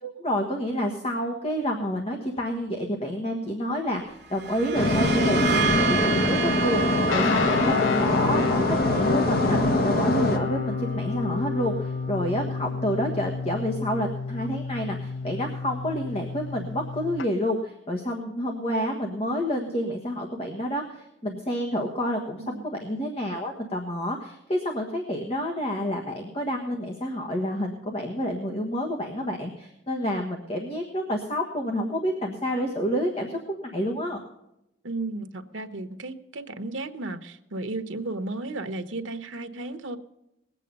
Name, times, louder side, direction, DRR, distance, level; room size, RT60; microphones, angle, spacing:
voice 1, 0.0-34.2, equal, 30° left, 2 dB, 1.4 m, -29 dB
sound 1, 4.2-11.8, right 5 dB, 60° right, 1.5 m, -31 dB
sound 2, 4.7-10.4, left 1 dB, 50° left, 1.3 m, -24 dB
sound 3, 7.1-17.3, left 5 dB, 85° left, 0.4 m, -30 dB
voice 2, 34.8-40.0, right 2 dB, 90° right, 9 dB, 1.1 m, -34 dB
20.0 x 8.3 x 5.4 m, 0.87 s
head